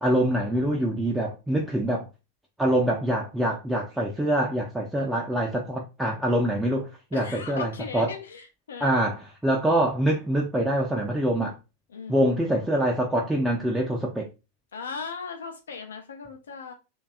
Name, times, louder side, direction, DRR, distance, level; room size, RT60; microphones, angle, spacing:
voice 1, 0.0-2.1 2.6-8.1 8.8-11.6 12.1-14.3, right 1 dB, 5° right, 0.4 m, -25 dB
voice 2, 7.1-9.0 11.9-12.2 14.7-16.7, left 5 dB, 65° left, 0.4 m, -37 dB
2.6 x 2.2 x 2.3 m
figure-of-eight pair, 90°, 0 cm